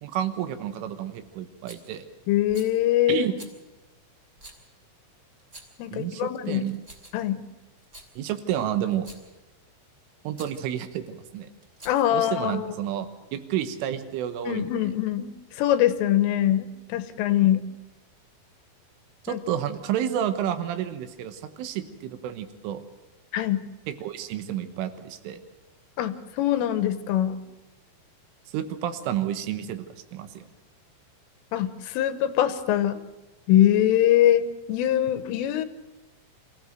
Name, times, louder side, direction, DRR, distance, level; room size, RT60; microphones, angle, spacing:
voice 1, 0.0-2.1 3.1-3.3 5.9-6.8 8.2-9.1 10.3-11.5 12.1-14.7 19.3-22.8 23.9-25.4 28.5-30.5, right 10 dB, 80° right, 10 dB, 3.6 m, -30 dB
Rattle, 1.6-1.9 2.5-2.8 3.4-3.6 4.4-4.6 5.4-5.8 6.6-7.3 7.8-8.1 8.9-9.3 10.3-10.6 11.6-12.2, right 1 dB, 25° right, 1.8 m, -47 dB
voice 2, 2.3-3.3 5.8-6.7 7.1-7.4 11.9-12.7 14.5-17.6 19.3-19.4 23.3-23.7 26.0-27.4 31.5-33.0 33.5-35.7, left 12 dB, 85° left, 12 dB, 3.5 m, -23 dB
25.0 x 15.5 x 7.9 m, 1.1 s
omnidirectional pair, 5.8 m